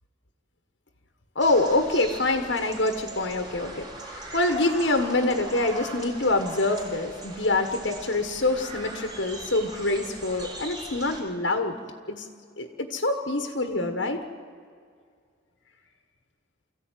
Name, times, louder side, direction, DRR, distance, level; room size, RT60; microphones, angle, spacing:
voice 1, 1.3-3.9 4.3-11.8 12.1-12.3 12.6-14.2, left 2 dB, 65° left, 6 dB, 1.5 m, -25 dB
sound 1, 1.4-11.2, right 1 dB, 20° right, 3.8 m, -41 dB
24.5 x 15.0 x 9.3 m, 2.1 s
head